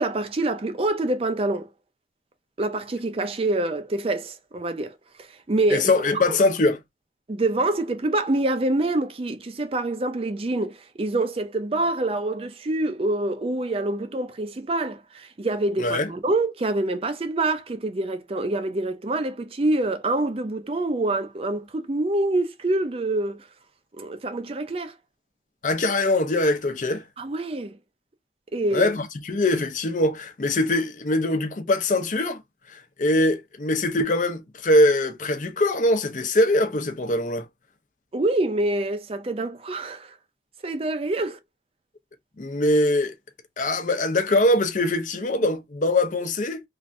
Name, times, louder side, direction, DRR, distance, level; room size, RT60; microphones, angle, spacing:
voice 1, 0.0-1.7 2.6-5.9 6.1-6.4 7.3-23.5 23.9-24.9 27.2-27.8 28.5-28.9 38.1-40.1 40.6-41.4, right 2 dB, 30° right, 0.5 m, -26 dB
voice 2, 5.7-6.8 15.8-16.1 25.6-27.0 28.7-32.4 32.7-37.5 42.4-43.1 43.6-46.6, left 1 dB, 45° left, 0.6 m, -22 dB
3.2 x 2.6 x 2.5 m
head